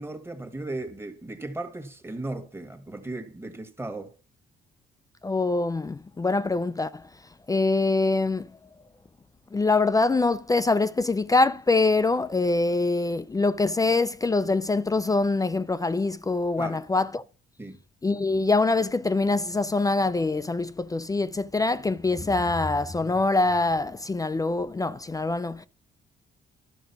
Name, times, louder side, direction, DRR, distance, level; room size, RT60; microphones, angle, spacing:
voice 1, 0.0-4.1 16.6-16.8 17.6-17.8, right 2 dB, 10° right, 1.5 m, -36 dB
voice 2, 5.2-7.1 7.5-8.5 9.5-17.2 18.0-25.7, left 3 dB, 15° left, 0.4 m, -24 dB
11.5 x 4.9 x 5.8 m
cardioid pair, 90°, 20 cm